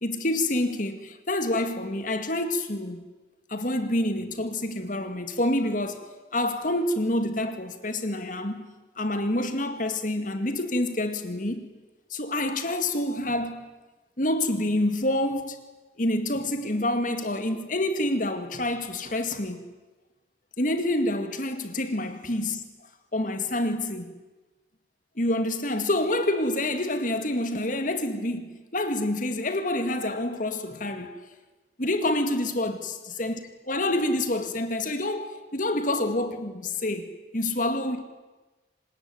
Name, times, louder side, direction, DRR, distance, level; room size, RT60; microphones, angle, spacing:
voice 1, 0.0-3.0 3.5-8.7 9.0-11.7 12.1-13.7 14.2-15.6 16.0-19.6 20.6-22.6 23.1-24.1 25.2-31.1 31.8-33.4 33.7-38.0, left 1 dB, 45° left, 2.1 m, -27 dB
26.0 x 20.0 x 9.5 m
head